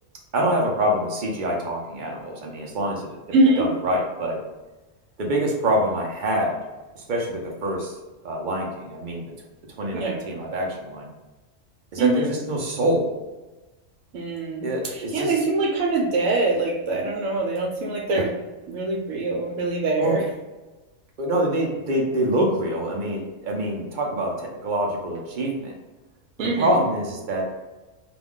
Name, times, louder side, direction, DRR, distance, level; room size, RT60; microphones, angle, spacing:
voice 1, 0.3-3.1 3.6-4.4 5.2-6.6 7.0-8.0 8.2-9.3 9.8-11.1 11.9-13.1 14.6-15.3 20.0-20.2 21.2-25.7 26.4-27.5, right 1 dB, 50° right, -1 dB, 0.6 m, -25 dB
voice 2, 3.3-3.6 9.9-10.2 12.0-12.3 14.1-18.4 18.7-20.2 26.4-26.7, right 2 dB, 85° right, 0 dB, 1.0 m, -23 dB
2.4 x 2.2 x 3.5 m, 1.1 s
omnidirectional pair, 1.3 m